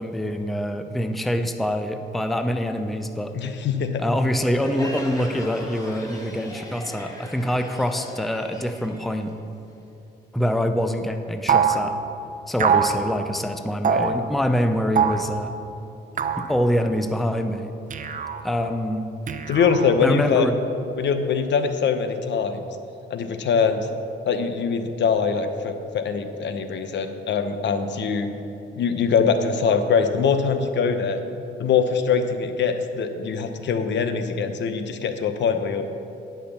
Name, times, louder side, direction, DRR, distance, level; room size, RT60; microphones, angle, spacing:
voice 1, 0.0-3.3 4.0-9.3 10.3-12.0 12.5-15.5 16.4-17.7 18.4-19.1 20.0-20.6, equal, ahead, 7 dB, 0.6 m, -25 dB
voice 2, 3.3-4.0 19.5-20.5 21.0-22.7 23.1-23.9 24.3-28.3 28.8-31.2 31.6-35.9, left 6 dB, 65° left, 8 dB, 0.9 m, -23 dB
Crowd, 4.4-9.9, left 1 dB, 20° left, 2.0 m, -38 dB
sound 1, 11.5-11.8 12.6-13.0 13.8-14.2 15.0-15.3 16.2-16.5 17.9-18.4 19.3-20.0, right 7 dB, 40° right, 0.6 m, -22 dB
9.8 x 5.9 x 7.1 m, 2.9 s
cardioid pair, 90°, 20 cm